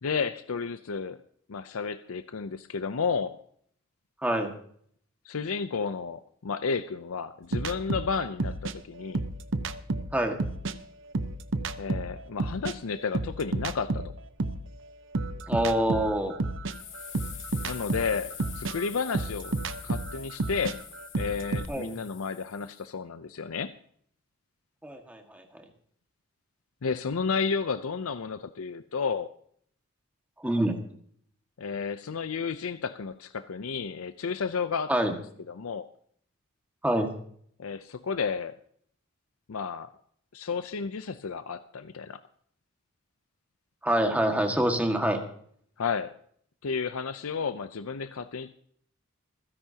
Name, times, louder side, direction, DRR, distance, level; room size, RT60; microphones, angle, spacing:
voice 1, 0.0-1.2 1.5-3.4 5.2-9.2 11.8-14.0 17.6-19.5 19.8-20.8 21.2-23.7 26.8-29.3 31.6-35.1 35.5-35.9 37.6-38.6 39.5-39.9 40.3-42.2 45.8-46.1 46.6-48.5, left 5 dB, 80° left, 11 dB, 0.6 m, -32 dB
sound 1, 7.5-10.8 11.1-14.7 15.1-21.7, right 2 dB, 60° right, 0.8 m, -31 dB
voice 2, 15.5-16.3 21.7-21.9 24.8-25.4 30.4-30.8 34.9-35.1 36.8-37.1 43.8-45.2, right 1 dB, 5° right, 3 dB, 1.8 m, -26 dB
sound 2, 16.7-22.9, left 10 dB, 60° left, 2.4 m, -45 dB
27.0 x 10.5 x 2.9 m, 0.63 s
head